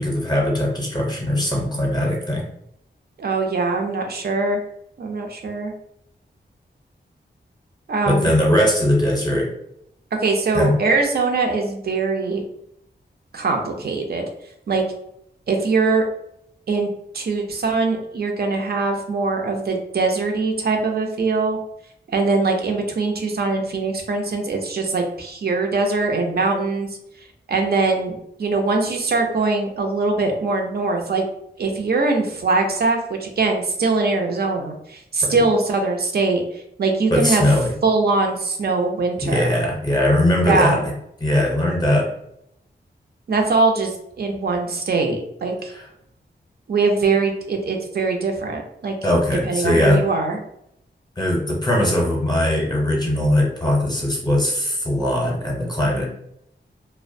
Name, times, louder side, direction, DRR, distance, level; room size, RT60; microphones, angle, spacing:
voice 1, 0.0-2.5 8.1-9.5 10.5-10.8 35.3-35.4 37.1-37.7 39.2-40.9 41.2-42.1 45.7-45.9 49.0-50.1 51.2-56.0, left 1 dB, 20° left, -2 dB, 0.6 m, -20 dB
voice 2, 3.2-4.6 5.0-5.7 7.9-8.3 10.2-12.4 13.3-14.2 14.7-14.8 15.5-16.1 16.7-16.9 17.1-21.6 22.1-26.9 27.5-31.2 31.6-36.4 36.8-37.4 37.8-39.5 40.4-40.8 43.3-43.9 44.2-45.7 46.7-48.9 49.4-50.4, right 3 dB, 60° right, 2 dB, 0.5 m, -22 dB
2.4 x 2.1 x 2.5 m, 0.77 s
wide cardioid pair, 100°, 18 cm